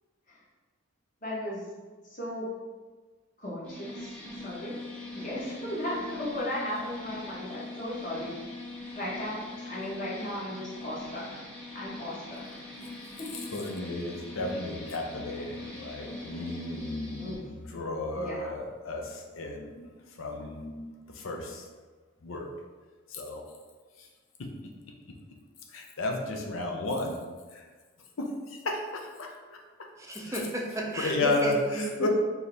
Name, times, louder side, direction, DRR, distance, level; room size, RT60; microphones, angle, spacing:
voice 1, 1.2-1.6 2.1-2.5 3.4-4.1 4.4-8.6 8.9-11.4 11.7-12.6 13.2-13.3 17.2-17.4 18.1-18.5, left 1 dB, 40° left, -6 dB, 1.2 m, -36 dB
sound 1, 3.6-17.3, left 2 dB, 5° left, 0.9 m, -42 dB
voice 2, 13.5-19.9 20.2-20.8 21.1-21.6 22.2-22.5 23.1-23.4 25.7-27.2 27.5-27.6 28.2-29.6 31.0-32.1, left 2 dB, 70° left, 2 dB, 0.6 m, -33 dB
voice 3, 30.0-32.1, right 1 dB, 15° right, -1 dB, 0.5 m, -33 dB
4.6 x 2.8 x 3.3 m, 1.3 s
head